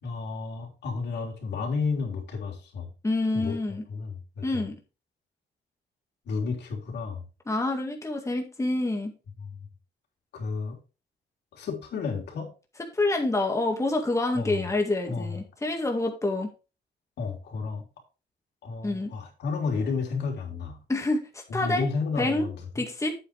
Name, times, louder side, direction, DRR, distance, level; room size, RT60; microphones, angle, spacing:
voice 1, 0.0-2.9 3.3-3.5 3.9-4.7 6.2-7.2 9.4-9.6 10.3-10.8 11.5-12.5 14.3-14.6 15.1-15.4 17.2-17.8 18.6-20.8 21.5-22.8, left 4 dB, 70° left, 1 dB, 3.4 m, -32 dB
voice 2, 3.0-3.8 4.4-4.8 7.5-9.1 12.9-16.5 18.8-19.1 20.9-21.9 22.2-22.5 22.8-23.1, left 2 dB, 15° left, 2 dB, 2.0 m, -27 dB
8.4 x 8.4 x 3.4 m, 0.32 s
cardioid pair, 90°, 18 cm